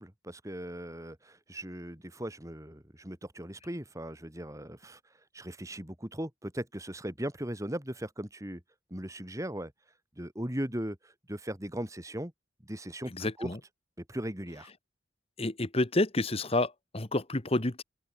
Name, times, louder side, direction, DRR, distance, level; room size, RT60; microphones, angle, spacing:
voice 1, 0.0-5.0 5.3-8.6 8.9-9.7 10.2-12.3 12.6-13.6 14.0-14.7, right 1 dB, 15° right, 3.0 m, -38 dB
voice 2, 13.1-13.6 15.4-17.8, left 2 dB, 30° left, 1.3 m, -29 dB
open air
head